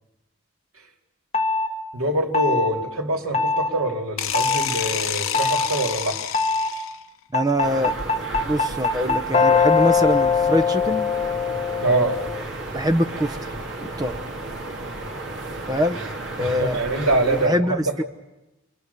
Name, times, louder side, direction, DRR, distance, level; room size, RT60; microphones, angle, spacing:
sound 1, 1.3-1.7 2.3-2.7 3.3-3.7 4.3-4.7 5.3-5.7 6.3-6.7 7.3-12.4, left 5 dB, 30° left, 1.3 m, -21 dB
voice 1, 1.9-6.2 11.8-12.2 16.4-18.0, right 2 dB, 90° right, 3 dB, 2.8 m, -24 dB
sound 2, 4.2-7.1, left 10 dB, 80° left, 0.8 m, -28 dB
voice 2, 7.3-11.1 12.7-13.5 13.8-14.2 15.7-16.0 16.4-16.8 17.3-18.0, equal, 20° right, 9 dB, 0.9 m, -24 dB
sound 3, 7.6-17.5, right 2 dB, 55° right, 2.7 m, -33 dB
29.5 x 23.5 x 6.9 m, 1.0 s
head